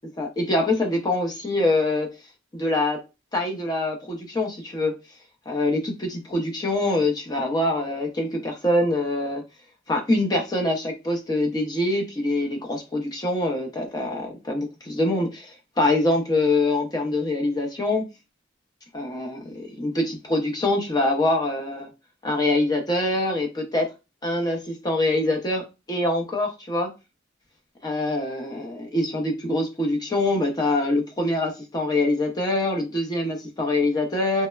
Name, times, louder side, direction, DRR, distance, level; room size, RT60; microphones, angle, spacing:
voice 1, 0.2-2.1 2.5-3.0 3.3-5.0 5.5-9.4 9.9-18.0 18.9-21.9 22.2-23.9 24.2-26.9 27.8-34.5, left 2 dB, 20° left, 0.6 m, -24 dB
2.9 x 2.1 x 2.2 m
head